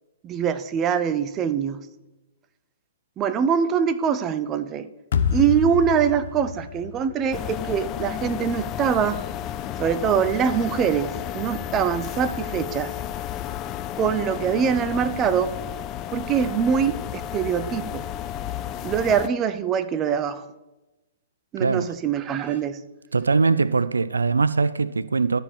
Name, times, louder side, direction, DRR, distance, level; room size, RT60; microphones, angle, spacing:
voice 1, 0.2-1.8 3.2-4.9 5.3-9.2 9.8-12.9 14.0-15.5 16.1-18.0 18.8-20.5 21.5-22.8, right 7 dB, 25° right, 0.6 m, -23 dB
sound 1, 5.1-8.2, left 7 dB, 55° left, 0.8 m, -28 dB
sound 2, 7.3-19.3, left 10 dB, 30° left, 0.4 m, -32 dB
voice 2, 21.6-21.9 23.1-25.4, right 4 dB, 80° right, 0.3 m, -21 dB
13.0 x 4.4 x 7.2 m
figure-of-eight pair, 120°, 0 cm